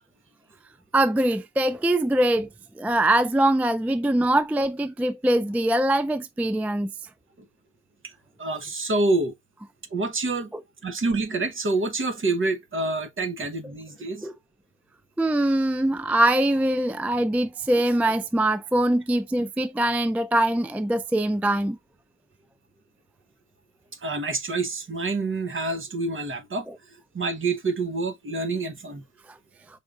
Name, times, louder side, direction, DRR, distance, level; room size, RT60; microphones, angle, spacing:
voice 1, 0.9-2.5 2.8-6.9 10.5-10.6 14.2-14.3 15.2-21.8, right 1 dB, 5° right, 0.3 m, -23 dB
voice 2, 8.4-9.3 9.9-10.5 10.8-14.2 24.0-26.6 27.1-29.0, right 3 dB, 45° right, 1.1 m, -27 dB
5.4 x 3.6 x 2.5 m
wide cardioid pair, 105°, 29 cm